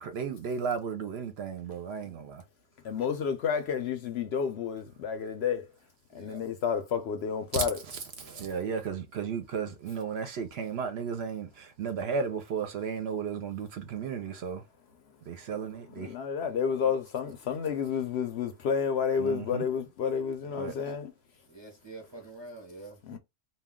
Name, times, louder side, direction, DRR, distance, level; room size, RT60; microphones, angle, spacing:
voice 1, 0.0-2.4 7.9-14.6 15.3-16.1 19.2-19.6 20.6-20.7, right 6 dB, 65° right, 0.7 m, -34 dB
voice 2, 2.8-5.6 6.1-7.8 16.0-21.1 23.1-23.2, left 7 dB, 65° left, 0.7 m, -30 dB
voice 3, 6.1-6.5 8.2-8.5 21.5-23.0, right 2 dB, 30° right, 0.5 m, -46 dB
2.2 x 2.2 x 3.5 m
omnidirectional pair, 1.3 m